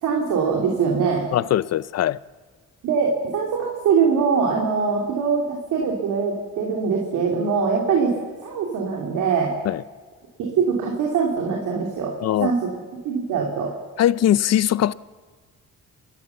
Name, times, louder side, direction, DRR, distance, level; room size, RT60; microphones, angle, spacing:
voice 1, 0.0-1.2 2.8-8.1 8.4-9.5 10.4-12.1 12.4-12.7 13.0-13.7, right 5 dB, 80° right, 2.8 m, -22 dB
voice 2, 1.3-2.2 9.6-9.8 12.2-12.5 14.0-14.9, left 11 dB, 55° left, 0.6 m, -20 dB
28.5 x 13.0 x 7.1 m
cardioid pair, 90°, 30 cm